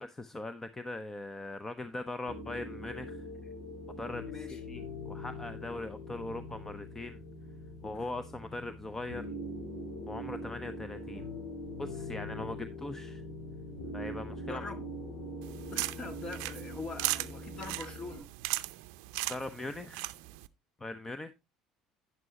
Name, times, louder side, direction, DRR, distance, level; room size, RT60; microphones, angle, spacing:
voice 1, 0.0-3.3 4.0-7.2 7.8-9.3 10.1-11.3 11.8-13.2 13.9-14.6 19.3-20.1 20.8-21.3, left 2 dB, 20° left, 0.9 m, -40 dB
sound 1, 2.2-18.2, left 1 dB, 75° left, 5.2 m, -43 dB
voice 2, 4.2-4.6 7.8-8.0 14.4-14.8 15.7-18.3, left 3 dB, 35° left, 1.8 m, -43 dB
sound 2, 15.4-20.5, right 20 dB, 70° right, 0.5 m, -38 dB
11.0 x 9.6 x 2.9 m
hypercardioid pair, 70°, 2 cm